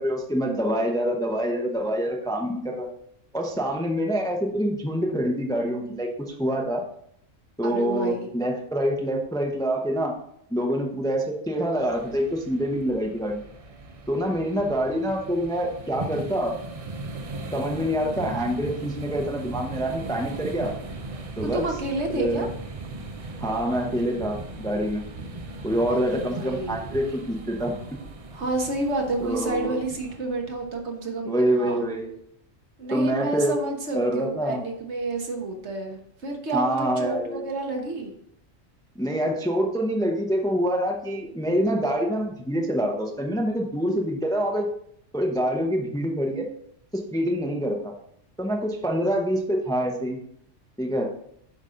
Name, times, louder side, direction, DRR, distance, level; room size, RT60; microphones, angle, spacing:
voice 1, 0.0-2.9 3.3-6.8 7.6-10.1 10.5-13.4 14.1-16.5 17.5-20.7 21.4-21.6 22.1-22.5 23.4-25.0 25.6-27.7 29.2-29.8 31.3-32.1 32.9-33.6 33.9-34.6 36.5-37.4 39.0-44.7 45.1-46.5 46.9-47.9 48.4-50.2 50.8-51.1, equal, 5° left, 2 dB, 0.7 m, -26 dB
voice 2, 7.6-8.3 21.4-22.5 25.9-26.8 28.3-31.8 32.8-38.1, right 2 dB, 60° right, 2 dB, 1.4 m, -30 dB
sound 1, 11.8-30.8, right 2 dB, 40° right, 0.5 m, -38 dB
8.1 x 5.4 x 3.8 m, 0.70 s
omnidirectional pair, 1.3 m